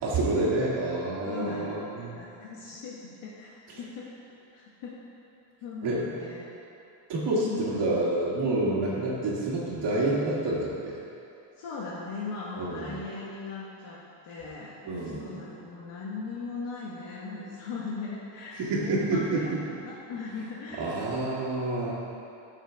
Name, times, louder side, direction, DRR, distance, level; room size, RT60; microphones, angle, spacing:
voice 1, 0.0-2.2 3.7-3.8 5.8-6.1 7.1-11.0 12.6-13.0 14.9-15.4 18.6-19.6 20.8-21.9, right 2 dB, 60° right, -5 dB, 1.8 m, -28 dB
voice 2, 1.2-4.1 4.5-4.9 5.6-6.5 7.3-7.8 8.4-8.5 11.6-21.1, left 4 dB, 75° left, -6 dB, 1.5 m, -39 dB
12.0 x 7.5 x 3.6 m, 2.8 s
cardioid pair, 170°, 47 cm